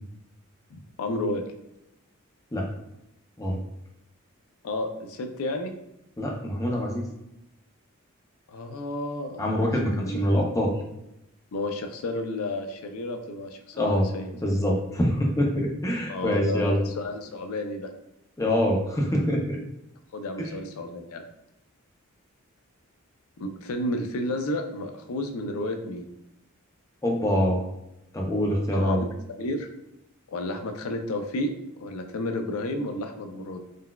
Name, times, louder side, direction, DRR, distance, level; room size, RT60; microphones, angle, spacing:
voice 1, 0.7-1.4 4.6-5.7 8.5-9.4 9.9-10.3 11.5-14.3 16.1-17.9 20.1-21.2 23.4-26.1 28.7-29.1 29.4-29.7 30.3-31.5 31.8-33.6, left 1 dB, 80° left, 6 dB, 0.4 m, -31 dB
voice 2, 6.2-7.1 9.4-10.7 13.7-14.0 14.4-16.8 18.4-19.6 20.4-20.5 27.0-27.7 28.1-29.0, equal, 15° left, -1 dB, 0.4 m, -25 dB
3.9 x 2.2 x 2.2 m, 0.86 s
head